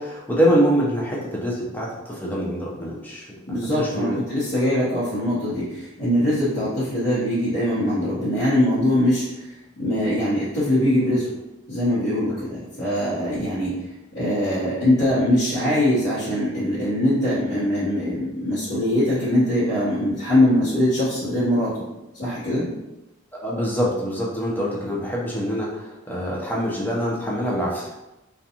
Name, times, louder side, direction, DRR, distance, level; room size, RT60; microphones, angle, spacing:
voice 1, 0.0-4.1 23.4-27.9, equal, 10° left, -5 dB, 0.5 m, -25 dB
voice 2, 3.5-9.4 9.8-11.3 11.7-13.7 14.1-21.8 22.1-22.7, left 1 dB, 70° left, -13 dB, 1.0 m, -22 dB
2.5 x 2.2 x 2.8 m, 0.96 s
head